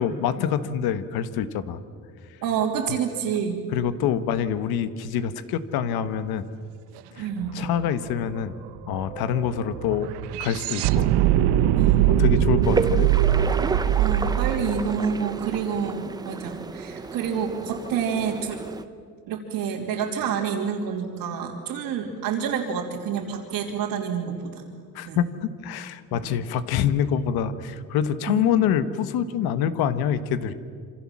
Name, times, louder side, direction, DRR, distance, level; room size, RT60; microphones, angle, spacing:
voice 1, 0.0-1.8 3.7-6.5 7.1-8.6 8.9-10.1 10.4-11.2 12.1-13.1 24.9-30.5, left 9 dB, 65° left, 12 dB, 1.3 m, -26 dB
voice 2, 2.4-3.6 7.2-7.5 11.7-12.2 14.0-18.6 19.3-24.6 25.0-25.2 26.1-26.3 28.3-28.5, right 7 dB, 60° right, -4 dB, 3.1 m, -28 dB
sound 1, 7.4-7.5 7.8-16.0, right 11 dB, 80° right, 1.2 m, -22 dB
sound 2, 12.6-18.8, right 3 dB, 10° right, 0.7 m, -32 dB
27.5 x 26.5 x 7.4 m, 2.1 s
cardioid pair, 175°, 39 cm